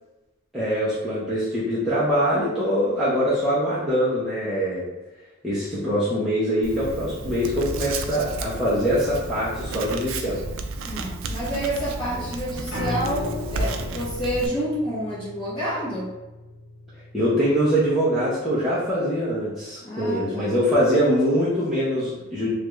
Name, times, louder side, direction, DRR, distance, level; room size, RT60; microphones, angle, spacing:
voice 1, 0.5-4.9 5.4-10.4 12.1-12.2 17.1-22.5, equal, ahead, -11 dB, 0.6 m, -23 dB
Writing, 6.6-14.5, right 3 dB, 80° right, 0.3 m, -32 dB
voice 2, 10.8-16.1 19.8-20.6, equal, 25° left, -9 dB, 1.0 m, -29 dB
Piano, 12.7-18.9, left 2 dB, 80° left, 1.3 m, -36 dB
3.2 x 2.4 x 3.0 m, 1.1 s
head